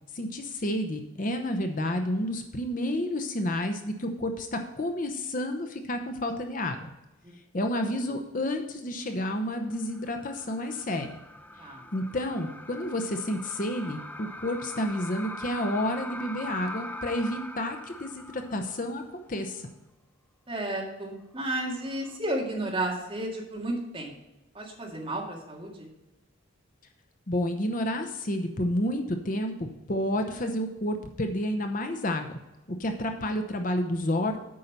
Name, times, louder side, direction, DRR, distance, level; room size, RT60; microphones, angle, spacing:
voice 1, 0.1-6.9 7.5-11.1 11.9-19.7 27.3-32.4 32.7-34.4, left 1 dB, 40° left, 6 dB, 0.8 m, -30 dB
sound 1, 9.6-19.1 19.4-19.5 21.6-22.2, left 1 dB, 10° left, 0.4 m, -42 dB
voice 2, 20.5-24.1 24.5-25.9, right 1 dB, 25° right, -2 dB, 2.0 m, -32 dB
8.6 x 5.6 x 6.6 m, 0.98 s
head